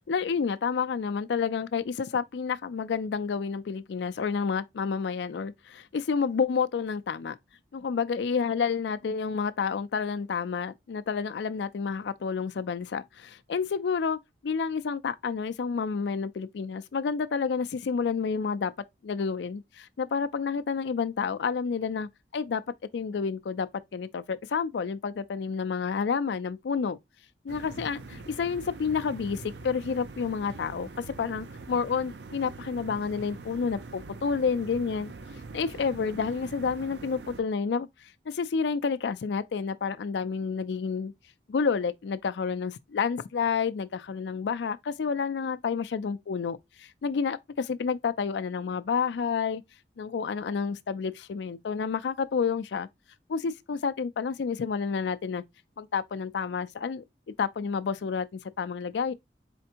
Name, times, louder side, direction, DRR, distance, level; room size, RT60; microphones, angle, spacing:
voice 1, 0.1-7.4 7.7-18.7 19.0-22.6 22.9-27.0 27.4-30.9 31.2-35.1 35.5-37.9 38.3-41.1 41.5-49.6 50.0-52.9 53.3-55.4 55.8-59.1, left 5 dB, 85° left, 0.4 m, -30 dB
sound 1, 27.5-37.4, right 3 dB, 80° right, 0.5 m, -43 dB
4.3 x 3.4 x 2.8 m
head